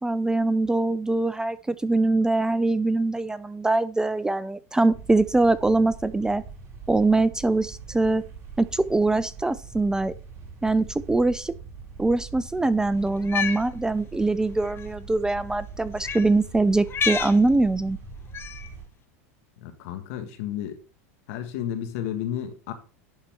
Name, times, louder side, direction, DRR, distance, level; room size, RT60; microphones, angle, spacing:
voice 1, 0.0-6.4 6.9-8.2 8.6-10.1 10.6-11.5 12.0-18.0, right 2 dB, 10° right, 0.4 m, -23 dB
sound 1, 4.9-18.9, right 5 dB, 35° right, 2.7 m, -42 dB
Cat, 13.2-13.6 14.7-14.9 16.0-16.3 16.9-17.4 18.3-18.7, left 7 dB, 30° left, 0.9 m, -28 dB
voice 2, 19.6-20.8 21.3-22.7, left 10 dB, 65° left, 1.7 m, -32 dB
11.0 x 4.1 x 4.7 m
hypercardioid pair, 105°, 8 cm